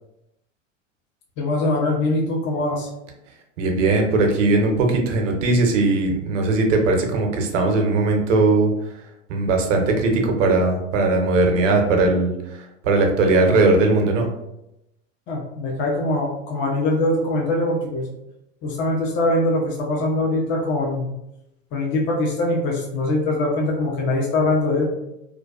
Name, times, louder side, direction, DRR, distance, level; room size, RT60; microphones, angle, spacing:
voice 1, 1.4-2.9 15.3-18.0 18.6-21.1 21.7-24.8, left 2 dB, 30° left, -1 dB, 0.5 m, -22 dB
voice 2, 3.6-8.7 9.3-12.3 12.8-14.3, right 3 dB, 70° right, 2 dB, 0.7 m, -19 dB
2.5 x 2.2 x 2.3 m, 0.87 s
hypercardioid pair, 95°, 38 cm